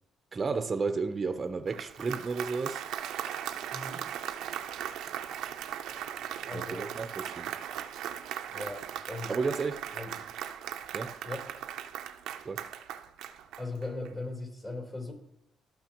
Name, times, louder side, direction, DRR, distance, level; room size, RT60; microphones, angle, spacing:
voice 1, 0.3-2.8 6.5-7.5 9.3-9.9 10.9-11.1 12.4-12.6, right 4 dB, 35° right, 0.7 m, -32 dB
Applause, 1.5-14.1, right 10 dB, 85° right, 0.6 m, -38 dB
voice 2, 3.7-4.0 6.5-6.9 8.5-8.8 9.1-9.3 10.0-10.1 11.2-11.5 13.6-15.1, left 2 dB, 30° left, 3.5 m, -38 dB
14.5 x 5.9 x 3.0 m
cardioid pair, 90°, 0 cm